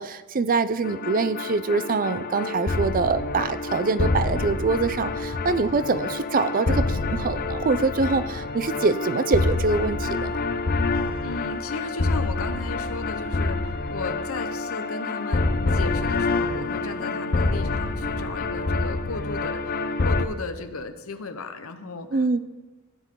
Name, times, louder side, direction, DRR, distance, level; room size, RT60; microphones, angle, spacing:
voice 1, 0.0-10.4 22.1-22.4, right 4 dB, 40° right, 13 dB, 0.5 m, -24 dB
sound 1, 0.8-20.3, left 3 dB, 45° left, 0.6 m, -27 dB
voice 2, 11.2-22.4, left 3 dB, 80° left, 8 dB, 0.9 m, -35 dB
16.0 x 9.5 x 3.8 m, 1.2 s
head